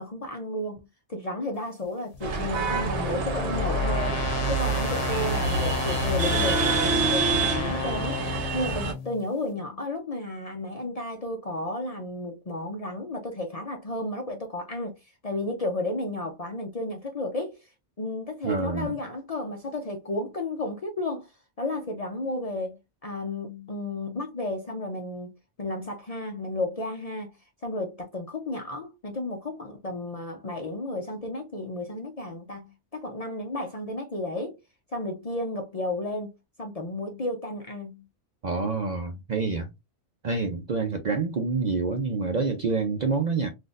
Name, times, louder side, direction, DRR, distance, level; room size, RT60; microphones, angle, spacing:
voice 1, 0.0-4.2 4.5-17.7 18.0-21.3 21.6-25.3 25.6-27.3 27.6-34.6 34.9-38.0, left 2 dB, 40° left, 0.5 m, -33 dB
sound 1, 2.1-9.3, left 8 dB, 90° left, 1.0 m, -34 dB
sound 2, 2.2-8.9, right 3 dB, 70° right, 1.1 m, -26 dB
voice 2, 18.4-18.9 38.4-39.7 40.2-43.5, right 4 dB, 50° right, 0.5 m, -27 dB
3.9 x 2.6 x 2.4 m
omnidirectional pair, 1.2 m